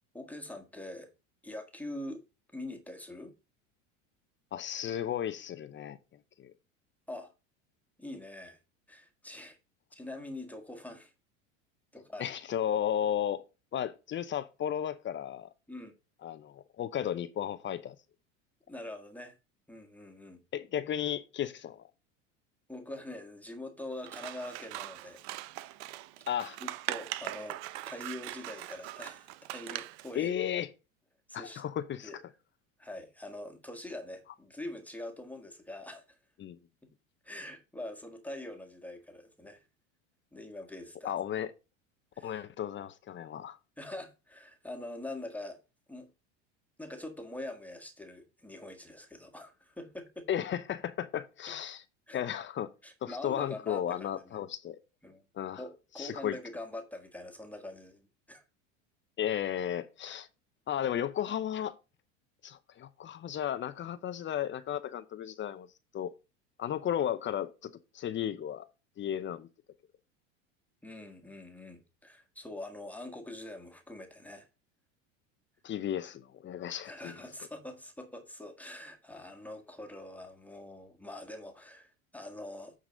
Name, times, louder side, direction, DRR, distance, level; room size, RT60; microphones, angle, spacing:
voice 1, 0.1-1.1 1.4-2.2 2.5-3.3 7.1-7.3 8.0-8.6 8.9-9.6 9.9-11.1 11.9-12.3 15.7-15.9 18.7-19.4 19.7-20.4 22.7-25.2 26.6-27.6 27.9-30.3 31.3-31.6 32.0-32.2 32.8-36.2 36.8-36.9 37.2-39.6 40.3-41.1 42.1-42.4 43.8-45.6 45.9-46.1 46.8-50.3 51.5-51.6 52.1-52.2 52.8-54.4 55.0-55.2 55.6-58.4 60.0-60.2 70.8-74.5 76.8-82.7, left 1 dB, 5° left, 1.6 m, -44 dB
voice 2, 4.5-6.0 6.4-6.5 12.2-13.4 13.7-15.5 16.2-18.0 20.5-21.8 26.3-26.6 30.1-30.7 31.3-32.1 36.4-36.6 41.0-41.5 42.2-43.6 50.3-51.8 52.1-52.7 53.0-54.8 55.3-55.6 56.0-56.3 59.2-60.3 60.7-61.8 62.4-65.7 65.9-66.1 66.6-68.7 69.0-69.5 75.6-77.1, left 10 dB, 30° left, 0.7 m, -34 dB
Scissors, 24.0-30.1, right 16 dB, 60° right, 0.7 m, -41 dB
9.0 x 4.1 x 5.1 m
hypercardioid pair, 100°, 38 cm